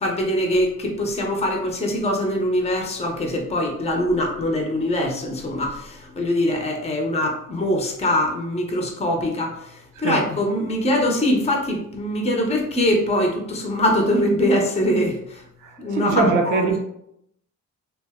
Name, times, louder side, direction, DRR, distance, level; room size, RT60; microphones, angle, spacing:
voice 1, 0.0-15.4 15.8-16.6, left 1 dB, 20° left, 1 dB, 0.7 m, -23 dB
voice 2, 15.6-16.8, right 4 dB, 80° right, 4 dB, 0.7 m, -22 dB
2.5 x 2.2 x 3.4 m, 0.76 s
cardioid pair, 90°, 30 cm